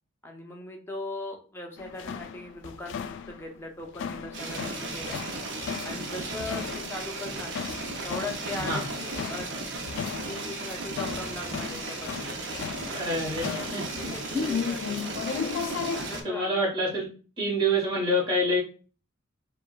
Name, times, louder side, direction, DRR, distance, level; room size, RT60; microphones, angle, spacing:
voice 1, 0.2-5.2 5.8-7.6 8.0-9.5 10.2-12.3 13.2-16.6, left 2 dB, 10° left, 1 dB, 0.6 m, -39 dB
sound 1, 1.8-16.0, left 6 dB, 60° left, 0.3 m, -36 dB
sound 2, 4.3-16.2, right 3 dB, 60° right, 0.7 m, -36 dB
voice 2, 8.5-8.8 12.8-13.8 14.3-14.6 16.2-17.0 17.4-18.6, equal, 25° right, -6 dB, 1.3 m, -27 dB
4.7 x 2.3 x 2.4 m, 0.38 s
head